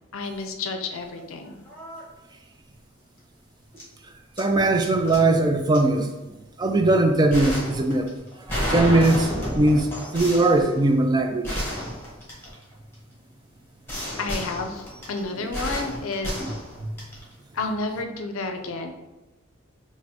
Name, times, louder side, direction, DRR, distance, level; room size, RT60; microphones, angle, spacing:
voice 1, 0.1-1.6 14.2-16.4 17.5-18.9, left 3 dB, 90° left, 5 dB, 0.5 m, -30 dB
sound 1, 1.1-1.3 1.6-2.0 3.8-3.9 4.4-5.2 5.7-5.8 7.3-12.9 13.9-17.3, equal, 10° left, 1.1 m, -31 dB
voice 2, 4.4-6.1 6.6-11.6 16.4-16.5 16.8-16.9, right 2 dB, 20° right, 5 dB, 0.3 m, -20 dB
6.2 x 2.1 x 2.9 m, 1.0 s
head